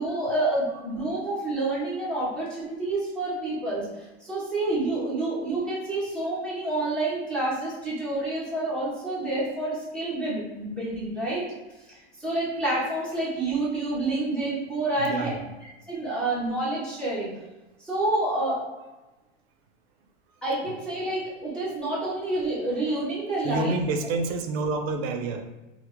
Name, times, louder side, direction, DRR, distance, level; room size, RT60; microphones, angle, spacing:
voice 1, 0.0-11.4 11.9-15.3 15.9-17.3 17.8-18.6 20.4-23.7 24.0-24.1, right 2 dB, 5° left, -9 dB, 0.5 m, -28 dB
voice 2, 15.0-15.5 20.6-20.7 23.4-25.5, right 3 dB, 75° right, 5 dB, 0.5 m, -28 dB
3.0 x 2.0 x 3.5 m, 1.1 s
supercardioid pair, 170°, 31 cm